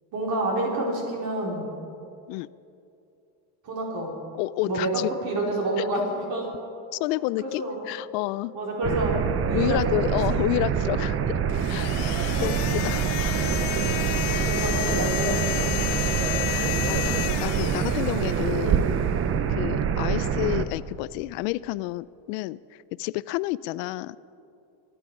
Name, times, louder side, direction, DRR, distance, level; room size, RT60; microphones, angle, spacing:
voice 1, 0.1-1.7 3.6-4.2 4.6-6.5 7.4-7.8 8.5-10.1 12.4-12.6 14.4-16.3, right 1 dB, 50° right, -2 dB, 4.7 m, -29 dB
voice 2, 4.4-5.1 5.8-5.9 6.9-8.5 9.5-11.2 11.7-13.6 14.3-14.5 16.5-18.8 19.5-22.6 23.0-24.2, left 18 dB, 90° left, 19 dB, 0.6 m, -30 dB
sound 1, 8.8-20.6, right 7 dB, 30° right, 0.6 m, -25 dB
sound 2, 11.5-18.9, left 15 dB, 55° left, 0.9 m, -32 dB
25.5 x 11.0 x 4.9 m, 2.6 s
cardioid pair, 135°, 47 cm